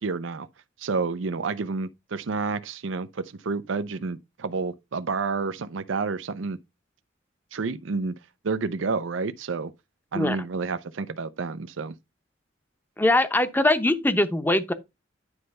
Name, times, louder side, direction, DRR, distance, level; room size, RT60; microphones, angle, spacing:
voice 1, 0.0-0.5 0.8-6.6 7.5-8.1 8.4-9.7 10.1-11.9, right 4 dB, 80° right, 0.6 m, -29 dB
voice 2, 13.0-14.7, left 1 dB, 10° left, 0.7 m, -22 dB
9.7 x 3.3 x 5.3 m
head